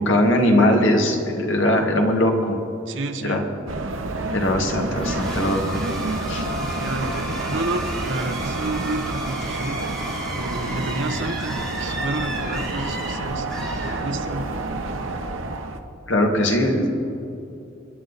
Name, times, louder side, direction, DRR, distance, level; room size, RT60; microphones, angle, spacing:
voice 1, 0.0-2.6 3.2-3.4 4.3-5.8 6.3-6.4 16.1-16.9, left 1 dB, 70° left, 2 dB, 2.0 m, -20 dB
voice 2, 2.9-3.4 6.7-9.8 10.3-14.5, right 2 dB, 65° right, 6 dB, 1.2 m, -30 dB
sound 1, 3.7-15.8, right 2 dB, 90° right, 1.1 m, -29 dB
sound 2, 5.0-14.6, right 1 dB, 5° left, 3.3 m, -33 dB
28.0 x 10.0 x 4.2 m, 2.8 s
head